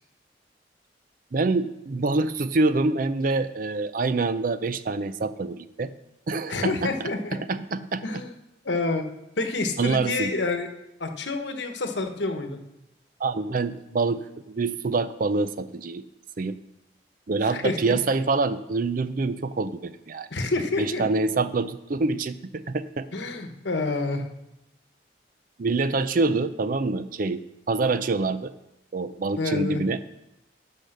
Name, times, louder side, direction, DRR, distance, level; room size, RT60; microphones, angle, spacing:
voice 1, 1.3-5.9 6.3-6.9 7.3-8.2 9.8-10.3 13.2-16.0 16.4-16.6 17.3-20.3 20.8-23.1 25.6-28.5 28.9-30.0, right 3 dB, 50° right, 13 dB, 0.5 m, -26 dB
voice 2, 6.5-7.4 8.0-8.3 8.6-9.1 9.4-10.7 11.0-12.6 17.4-17.9 20.3-21.0 23.1-24.2 29.4-29.8, left 3 dB, 85° left, 6 dB, 1.2 m, -28 dB
11.5 x 5.2 x 6.5 m, 0.90 s
head